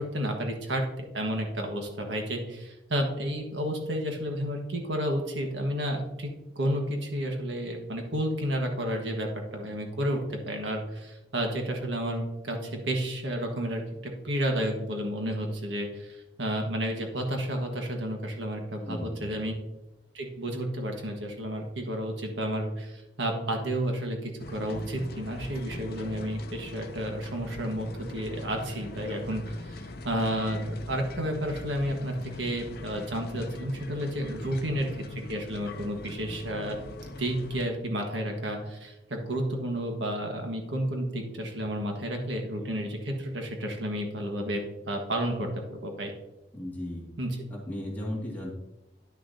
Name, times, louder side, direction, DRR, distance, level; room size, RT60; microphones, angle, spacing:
voice 1, 0.0-6.3 6.5-19.6 20.1-36.8 37.2-44.6 44.9-46.1 47.2-47.4, equal, 85° right, 2 dB, 1.5 m, -31 dB
voice 2, 18.8-19.4 34.7-34.8 46.5-47.0 47.5-48.5, left 1 dB, 10° left, -4 dB, 2.1 m, -36 dB
sound 1, 24.4-37.6, left 2 dB, 60° left, 0.6 m, -42 dB
11.0 x 6.3 x 2.8 m, 0.92 s
head